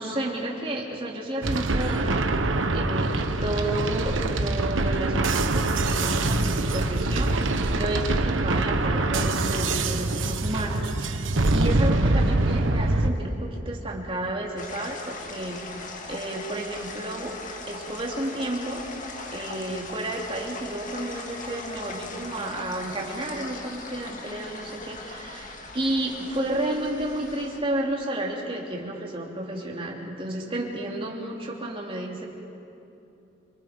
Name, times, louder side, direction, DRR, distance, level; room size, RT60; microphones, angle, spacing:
voice 1, 0.0-2.2 2.7-11.2 11.5-15.6 16.1-17.4 17.7-32.3, right 1 dB, 30° right, -2 dB, 3.2 m, -31 dB
sound 1, 1.4-13.1, right 2 dB, 80° right, 1.2 m, -24 dB
sound 2, 14.6-27.6, left 3 dB, 40° left, 2.0 m, -39 dB
28.0 x 24.5 x 5.3 m, 2.9 s
head